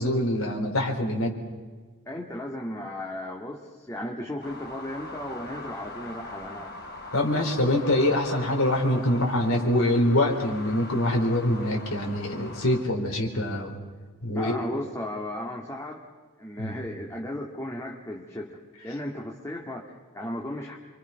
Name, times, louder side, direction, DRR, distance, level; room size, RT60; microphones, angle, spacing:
voice 1, 0.0-1.3 7.1-13.8 14.2-14.6 16.6-16.8, left 1 dB, 65° left, 1 dB, 4.2 m, -24 dB
voice 2, 2.1-6.7 14.3-16.0 16.4-18.6 18.8-20.8, left 1 dB, 15° left, -1 dB, 2.0 m, -35 dB
sound 1, 4.4-12.8, left 2 dB, 50° left, 4.2 m, -41 dB
28.5 x 25.0 x 5.9 m, 1.5 s
head